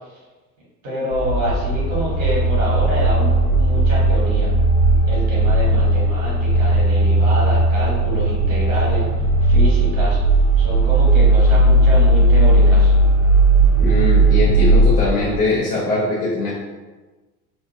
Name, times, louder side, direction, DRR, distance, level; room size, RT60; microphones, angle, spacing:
voice 1, 0.8-4.5 5.0-9.1 9.4-10.2 10.6-12.9, equal, 60° right, -5 dB, 1.4 m, -27 dB
sound 1, 1.1-15.4, right 2 dB, 85° right, 1.1 m, -16 dB
voice 2, 13.8-16.5, left 2 dB, 80° left, -6 dB, 0.7 m, -21 dB
3.6 x 2.3 x 2.7 m, 1.3 s
figure-of-eight pair, 70°, 44 cm